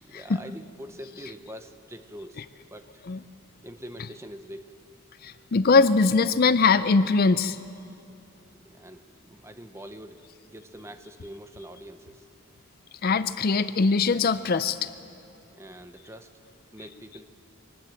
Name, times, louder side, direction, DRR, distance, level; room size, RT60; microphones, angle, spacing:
voice 1, 0.0-3.0 3.6-4.7 8.6-12.3 15.5-16.3 16.7-17.3, equal, 10° right, 8 dB, 0.8 m, -44 dB
voice 2, 5.2-7.6 13.0-14.9, left 4 dB, 45° left, 13 dB, 0.4 m, -21 dB
23.5 x 19.5 x 7.8 m, 2.7 s
head